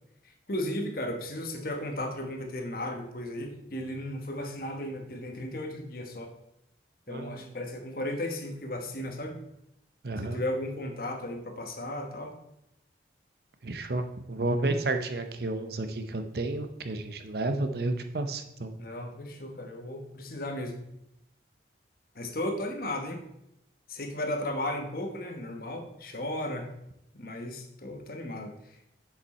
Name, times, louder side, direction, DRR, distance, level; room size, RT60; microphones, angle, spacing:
voice 1, 0.2-6.3 7.1-9.4 10.2-12.4 18.8-20.8 22.1-23.2 23.9-26.7 27.1-28.9, left 1 dB, 50° left, 4 dB, 1.2 m, -35 dB
voice 2, 7.1-7.6 10.0-10.4 13.6-18.7, right 2 dB, 55° right, 7 dB, 0.7 m, -31 dB
7.3 x 7.2 x 4.2 m, 0.82 s
head